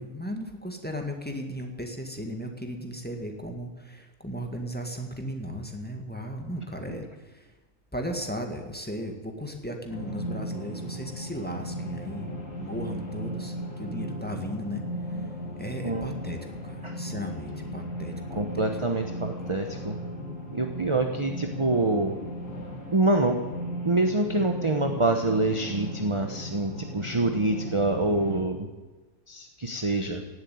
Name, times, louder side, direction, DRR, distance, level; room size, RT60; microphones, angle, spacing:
voice 1, 0.0-7.5 7.9-12.3 12.6-14.8 15.1-15.3 15.6-16.4 16.6-18.7, equal, 5° left, 3 dB, 1.7 m, -36 dB
sound 1, 9.9-28.4, equal, 65° left, 2.8 m, -36 dB
voice 2, 18.3-20.0 20.5-22.2 22.9-23.4 23.8-28.7 29.3-30.2, right 2 dB, 25° right, 5 dB, 1.0 m, -26 dB
16.5 x 8.0 x 9.4 m, 1.2 s
omnidirectional pair, 1.4 m